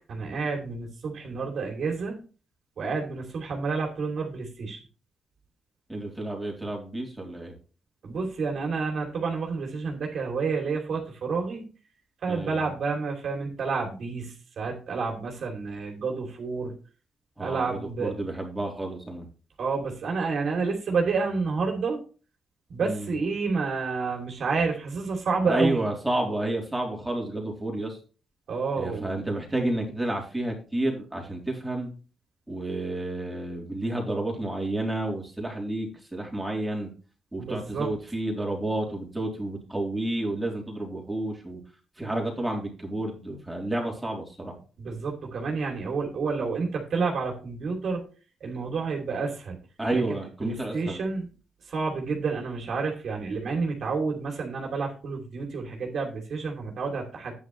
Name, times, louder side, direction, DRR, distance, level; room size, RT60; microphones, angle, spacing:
voice 1, 0.1-2.2 2.8-4.8 8.0-11.6 12.2-16.7 17.4-18.1 19.6-22.0 22.7-25.9 28.5-29.1 37.4-37.9 44.8-48.0 48.4-49.6 49.9-50.0 50.4-51.3 51.7-57.3, right 4 dB, 60° right, 1 dB, 2.9 m, -29 dB
voice 2, 5.9-7.5 12.3-12.7 17.4-19.2 22.8-23.1 25.5-28.0 28.8-31.9 32.5-36.9 37.3-41.6 42.0-44.5 49.8-51.0, right 1 dB, 10° right, -1 dB, 3.4 m, -30 dB
10.0 x 9.6 x 3.2 m, 0.37 s
cardioid pair, 100°, 0 cm